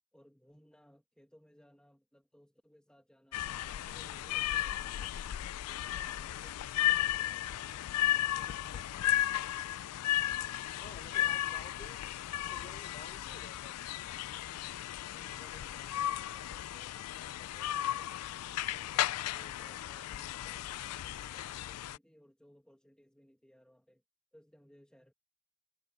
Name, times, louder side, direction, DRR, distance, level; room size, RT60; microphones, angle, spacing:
voice 1, 0.1-3.5 3.7-5.4 15.0-18.2 18.7-24.0 24.3-25.1, equal, 5° left, 1.9 m, -62 dB
sound 1, 3.3-22.0, left 13 dB, 90° left, 0.4 m, -35 dB
voice 2, 10.8-12.0 12.3-13.8, left 3 dB, 30° left, 4.2 m, -52 dB
head